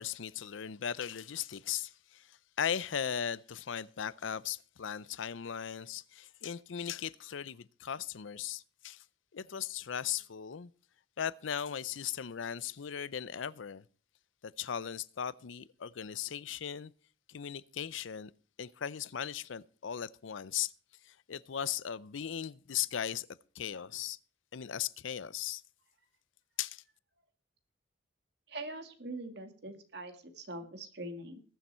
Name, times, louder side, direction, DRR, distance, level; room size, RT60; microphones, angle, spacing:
voice 1, 0.0-9.0 9.3-10.7 11.2-13.8 14.4-16.9 17.3-18.3 18.6-20.7 21.0-23.3 23.5-24.2 24.5-25.6 26.6-26.8, left 9 dB, 85° left, 0.5 m, -38 dB
voice 2, 28.5-31.4, right 2 dB, 60° right, 2.0 m, -43 dB
20.5 x 7.1 x 4.3 m
head